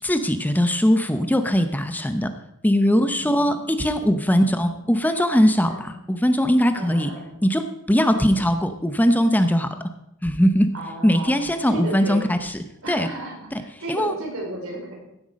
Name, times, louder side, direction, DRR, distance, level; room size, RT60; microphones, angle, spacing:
voice 1, 0.0-2.3 2.6-7.1 7.4-9.7 10.2-10.7 11.0-12.5 12.9-13.1 13.9-14.1, equal, 10° left, 8 dB, 0.7 m, -20 dB
voice 2, 2.9-3.6 4.4-4.8 5.7-5.9 6.7-7.3 8.1-8.5 10.7-12.2 12.8-14.9, right 1 dB, 75° right, -1 dB, 4.8 m, -34 dB
16.0 x 8.0 x 5.2 m, 0.85 s
head